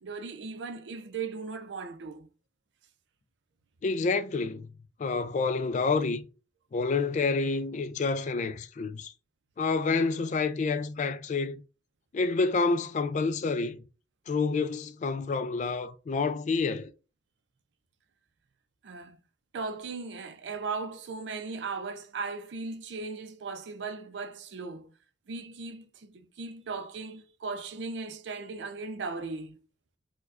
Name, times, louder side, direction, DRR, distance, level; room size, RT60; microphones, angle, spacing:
voice 1, 0.0-2.3 18.8-19.2 19.5-24.9 25.3-29.6, right 4 dB, 75° right, 0.5 m, -37 dB
voice 2, 3.8-4.7 5.0-6.3 6.7-9.1 9.6-11.6 12.1-13.8 14.3-16.9, left 4 dB, 45° left, 0.3 m, -28 dB
4.6 x 2.2 x 2.4 m
head